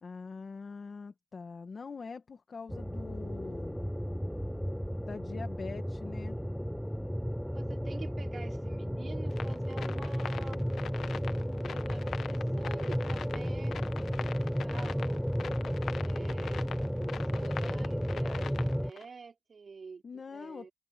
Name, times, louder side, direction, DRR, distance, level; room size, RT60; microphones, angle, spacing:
voice 1, 0.0-3.8 5.0-6.4 20.0-20.7, left 4 dB, 40° left, 1.7 m, -43 dB
sound 1, 2.7-18.9, equal, ahead, 0.3 m, -33 dB
voice 2, 7.5-10.8 11.4-13.8 14.2-15.3 16.0-16.7 17.0-20.7, right 5 dB, 45° right, 3.8 m, -49 dB
sound 2, 9.3-19.0, left 7 dB, 70° left, 1.0 m, -42 dB
open air
wide cardioid pair, 115°, 0 cm